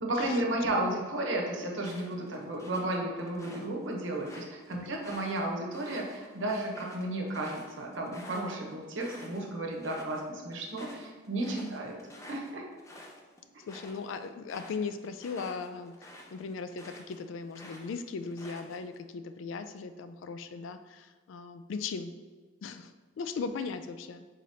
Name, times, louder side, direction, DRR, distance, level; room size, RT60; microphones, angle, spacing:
voice 1, 0.0-12.0 12.3-12.6, right 1 dB, 80° right, 0 dB, 0.9 m, -33 dB
sound 1, 1.8-3.7 4.1-9.4 9.7-10.2 10.5-17.2 17.5-19.0, left 1 dB, 15° left, 0.4 m, -50 dB
voice 2, 4.7-5.0 11.6-11.7 13.7-22.1 22.6-24.2, left 5 dB, 80° left, 10 dB, 0.3 m, -38 dB
4.9 x 3.9 x 2.8 m, 1.4 s
head